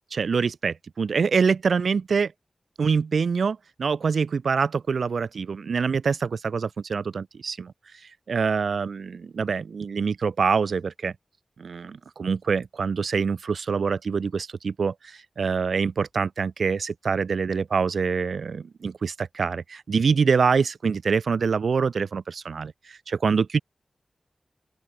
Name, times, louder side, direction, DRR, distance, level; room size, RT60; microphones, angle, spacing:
voice 1, 0.1-2.3 2.8-7.7 8.3-11.1 11.6-23.6, right 5 dB, 85° right, 4.9 m, -25 dB
open air
wide cardioid pair, 80°, 0 cm